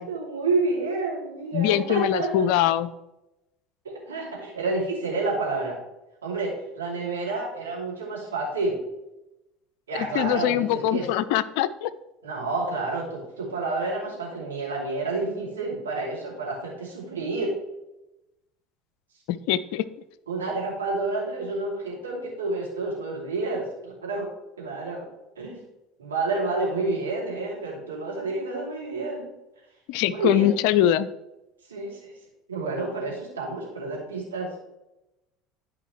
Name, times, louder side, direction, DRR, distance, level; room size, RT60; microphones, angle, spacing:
voice 1, 0.0-2.5 4.1-5.8 6.2-8.8 9.9-11.1 12.2-17.5 20.3-24.3 24.6-25.0 25.4-25.6 26.0-29.3 30.1-30.5 31.7-32.1 32.5-34.5, right 3 dB, 80° right, -4 dB, 2.8 m, -29 dB
voice 2, 1.5-2.9 10.1-11.9 19.3-19.8 29.9-31.1, left 11 dB, 60° left, 15 dB, 0.4 m, -23 dB
12.5 x 4.9 x 3.2 m, 0.95 s
figure-of-eight pair, 70°, 0 cm